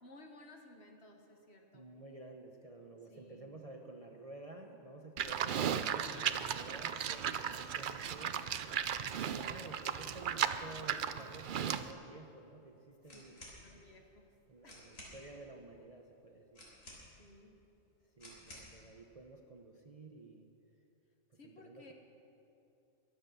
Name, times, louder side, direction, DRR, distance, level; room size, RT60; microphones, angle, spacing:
voice 1, 0.0-1.9 3.1-3.5 8.9-9.2 13.1-13.3 13.6-14.3 14.6-14.9 17.2-17.6 21.4-21.9, left 1 dB, 50° left, 3 dB, 1.7 m, -57 dB
voice 2, 1.7-8.8 9.0-13.4 14.5-16.6 18.2-20.5 21.3-21.9, right 2 dB, 30° right, 2 dB, 0.8 m, -52 dB
Livestock farm animals working animals, 5.2-11.9, right 8 dB, 60° right, 0.5 m, -36 dB
sound 1, 13.0-13.6 14.3-14.4 14.6-15.2 16.5-17.3 18.2-18.7, left 1 dB, 75° left, 4.1 m, -53 dB
22.0 x 8.1 x 6.8 m, 2.8 s
omnidirectional pair, 1.4 m